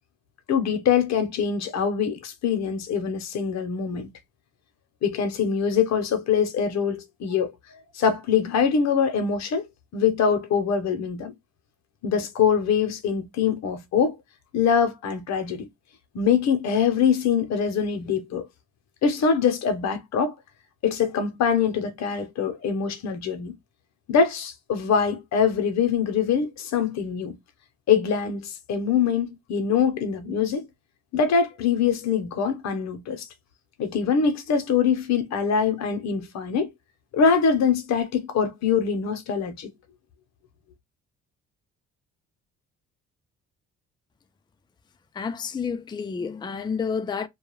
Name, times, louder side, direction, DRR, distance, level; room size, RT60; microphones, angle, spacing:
voice 1, 0.5-4.1 5.0-7.5 7.9-9.7 9.9-11.3 12.0-14.2 14.5-15.7 16.1-18.5 19.0-20.3 20.8-23.5 24.1-27.4 27.9-30.6 31.1-33.3 33.8-36.7 37.1-39.7, left 6 dB, 60° left, 0.8 m, -23 dB
voice 2, 45.1-47.3, left 6 dB, 15° left, 0.4 m, -29 dB
2.3 x 2.2 x 3.1 m
cardioid pair, 90°, 30 cm